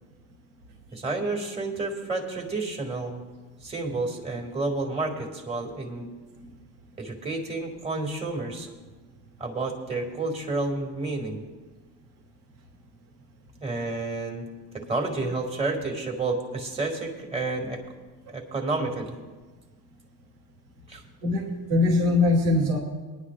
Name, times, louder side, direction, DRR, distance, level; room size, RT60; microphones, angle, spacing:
voice 1, 0.9-3.2 3.6-6.1 7.0-8.7 9.4-11.4 13.6-14.5 14.7-17.8 18.3-19.2 20.9-21.0, right 3 dB, 15° right, 1 dB, 2.3 m, -30 dB
voice 2, 21.2-22.8, left 2 dB, 80° right, 1 dB, 2.6 m, -22 dB
21.0 x 10.5 x 2.5 m, 1.3 s
supercardioid pair, 100°, 39 cm